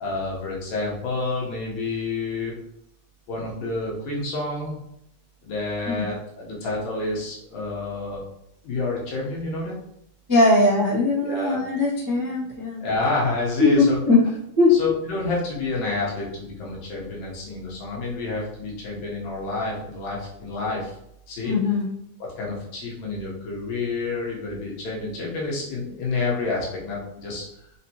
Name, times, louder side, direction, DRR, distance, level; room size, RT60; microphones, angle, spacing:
voice 1, 0.0-2.5 3.3-4.7 5.4-8.2 8.6-9.8 11.2-11.6 12.8-14.0 14.7-20.9 21.3-21.5 22.2-27.5, left 3 dB, 75° left, -4 dB, 2.2 m, -29 dB
voice 2, 10.3-12.9 13.6-14.2 14.6-14.8 21.4-21.9, left 3 dB, 15° right, -10 dB, 0.7 m, -20 dB
5.2 x 2.8 x 2.8 m, 0.77 s
omnidirectional pair, 3.3 m